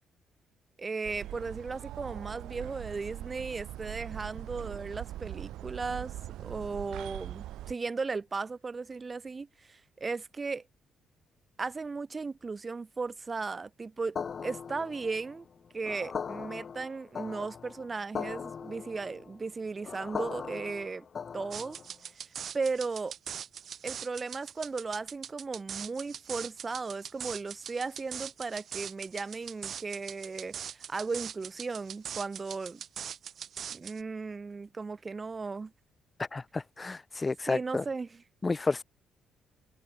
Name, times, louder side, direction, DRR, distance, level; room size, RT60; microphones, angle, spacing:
voice 1, 0.8-6.1 6.4-10.6 11.6-15.5 15.7-21.0 21.3-21.8 22.5-23.1 23.8-32.8 33.7-35.7 37.5-38.1, right 4 dB, 30° right, 0.7 m, -36 dB
sound 1, 1.0-7.7, right 14 dB, 85° right, 0.4 m, -41 dB
sound 2, 14.2-22.0, left 6 dB, 45° left, 2.7 m, -40 dB
sound 3, 21.5-34.0, right 8 dB, 60° right, 0.9 m, -42 dB
voice 2, 36.2-37.8 38.4-38.8, left 3 dB, 25° left, 0.4 m, -31 dB
cardioid pair, 90°, 0 cm